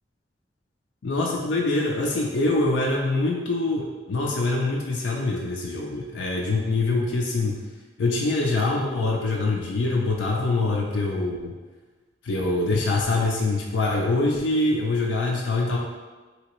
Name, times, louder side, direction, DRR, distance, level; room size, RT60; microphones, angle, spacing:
voice 1, 1.0-7.6 8.0-11.5 12.2-15.8, left 2 dB, 85° left, -1 dB, 0.5 m, -24 dB
3.3 x 2.8 x 2.9 m, 1.3 s
head